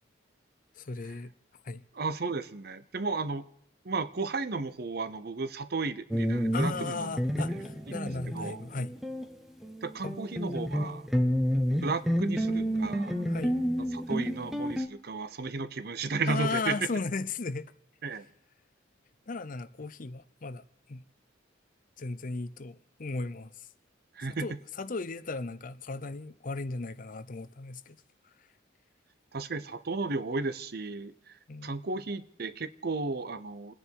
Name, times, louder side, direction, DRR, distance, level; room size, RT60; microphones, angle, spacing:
voice 1, 0.8-1.3 1.6-1.8 6.5-8.9 10.0-10.2 13.3-13.6 16.3-17.7 19.3-20.6 20.9-21.0 22.0-23.5 24.4-28.0 31.5-31.7, left 3 dB, 45° left, 0.6 m, -36 dB
voice 2, 1.9-3.5 3.8-7.2 7.9-8.0 8.3-8.6 9.8-11.1 11.8-13.2 13.8-16.8 18.0-18.3 24.1-24.6 29.3-31.4 31.6-33.7, right 3 dB, 55° right, 0.7 m, -34 dB
sound 1, 6.1-9.3 9.6-14.9, equal, ahead, 1.0 m, -30 dB
28.5 x 10.0 x 4.6 m
head